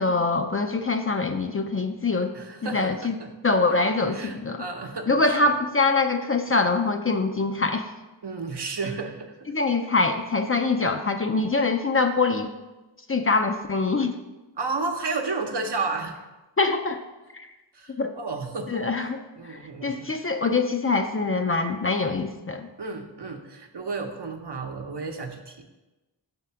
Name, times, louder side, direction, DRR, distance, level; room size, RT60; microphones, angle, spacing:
voice 1, 0.0-2.3 2.6-3.2 3.4-4.6 5.1-7.9 9.5-12.5 13.1-14.1 16.6-17.0 17.3-17.5 17.9-18.1 18.7-19.2 19.5-22.7, left 3 dB, 30° left, 5 dB, 0.5 m, -24 dB
voice 2, 2.3-3.3 4.1-5.5 8.2-9.5 14.6-16.1 17.7-18.8 19.3-20.1 22.8-25.6, right 3 dB, 65° right, 4 dB, 0.8 m, -32 dB
5.8 x 3.6 x 5.6 m, 1.1 s
wide cardioid pair, 50°, 45 cm